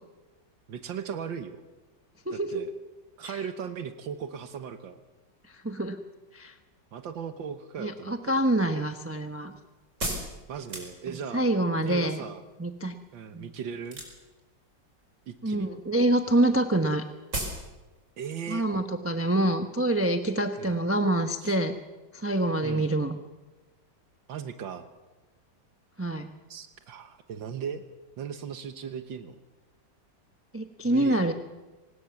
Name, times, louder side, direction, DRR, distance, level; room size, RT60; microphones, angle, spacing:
voice 1, 0.7-1.6 2.3-2.7 3.2-5.0 6.9-8.5 10.5-11.5 11.8-12.4 13.1-14.0 15.3-15.7 18.2-18.9 20.6-20.8 21.4-21.6 22.6-22.9 24.3-24.9 26.5-27.8 28.2-29.4 30.9-31.3, right 7 dB, 80° right, 9 dB, 1.9 m, -37 dB
voice 2, 5.6-6.0 6.3-6.5 7.8-9.5 11.3-12.2 12.6-13.0 13.3-13.5 15.4-17.0 18.5-21.7 22.1-23.2 26.0-26.3 30.5-31.3, right 1 dB, 10° right, 6 dB, 0.8 m, -26 dB
sound 1, 8.4-11.4 13.8-14.4 14.8-15.3 15.6-15.8 16.1-16.2 16.4-16.5 16.8-16.9 17.3-17.7 18.0-18.1, right 1 dB, 40° right, 5.3 m, -35 dB
24.5 x 19.5 x 7.1 m, 1.2 s
omnidirectional pair, 2.0 m